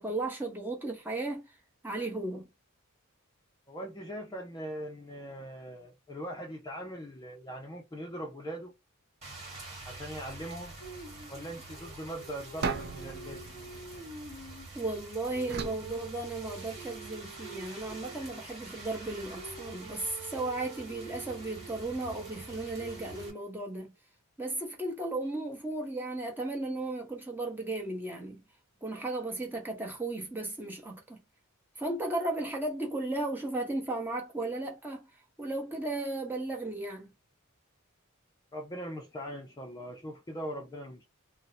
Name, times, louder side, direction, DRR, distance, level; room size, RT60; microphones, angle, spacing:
voice 1, 0.0-1.6 1.8-2.5 14.7-23.9 24.4-28.4 28.8-31.2 31.8-35.1 35.4-37.1, right 2 dB, 10° right, 0.9 m, -35 dB
voice 2, 3.7-8.7 9.9-10.8 11.3-13.5 38.5-41.0, equal, 15° left, 0.4 m, -41 dB
Rain, 9.2-23.3, right 3 dB, 30° right, 1.3 m, -45 dB
sound 1, 12.6-14.8 15.5-16.9, right 4 dB, 50° right, 0.5 m, -38 dB
2.7 x 2.0 x 4.0 m
head